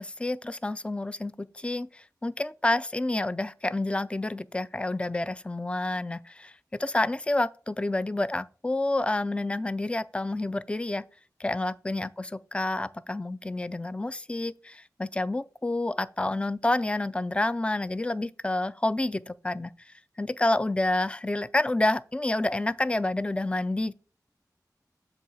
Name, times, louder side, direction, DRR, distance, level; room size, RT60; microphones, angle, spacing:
voice 1, 0.0-11.0 11.4-23.9, left 2 dB, 15° left, 0.4 m, -29 dB
7.4 x 3.2 x 6.1 m
wide cardioid pair, 60°, 7 cm